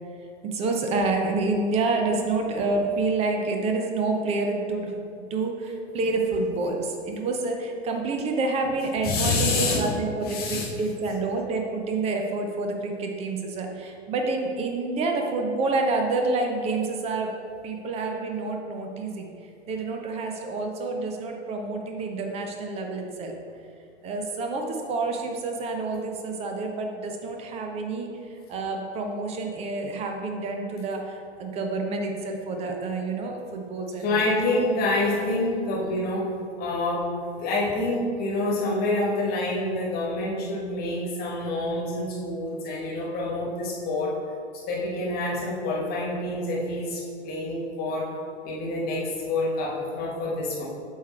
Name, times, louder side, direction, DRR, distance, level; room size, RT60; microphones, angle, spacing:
voice 1, 0.4-4.9 5.3-17.3 17.6-19.3 19.7-23.3 24.0-28.1 28.5-34.2, right 3 dB, 20° right, 3 dB, 0.6 m, -28 dB
voice 2, 9.0-9.8 10.2-10.7 34.0-36.3 36.6-44.1 44.5-48.1 48.4-50.6, left 2 dB, 25° left, -3 dB, 1.4 m, -27 dB
8.1 x 3.2 x 4.3 m, 2.4 s
figure-of-eight pair, 95°, 34 cm